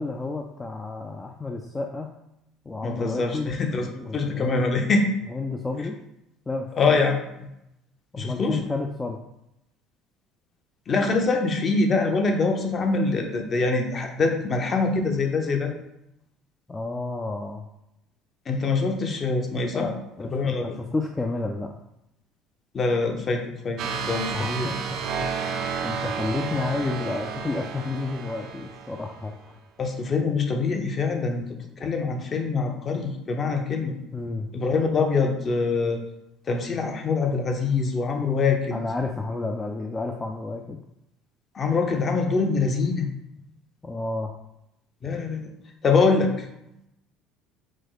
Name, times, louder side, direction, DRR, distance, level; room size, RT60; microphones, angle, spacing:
voice 1, 0.0-2.1 2.7-4.7 5.3-6.0 6.5-7.0 8.1-9.2 16.7-17.6 19.6-21.7 24.3-25.3 25.8-29.6 34.1-34.5 38.7-40.8 43.8-44.3, left 3 dB, 15° left, 2 dB, 0.4 m, -31 dB
voice 2, 2.8-3.9 4.1-5.0 6.7-7.5 8.2-8.6 10.9-15.7 18.5-19.9 20.3-20.8 22.7-24.7 29.8-31.4 31.8-34.0 34.5-36.0 36.5-38.8 41.5-43.1 45.0-45.5 45.8-46.3, left 4 dB, 35° left, 4 dB, 0.7 m, -24 dB
sound 1, 23.8-29.3, right 6 dB, 65° right, 0.5 m, -31 dB
5.0 x 2.2 x 4.0 m, 0.84 s
supercardioid pair, 105°, 0 cm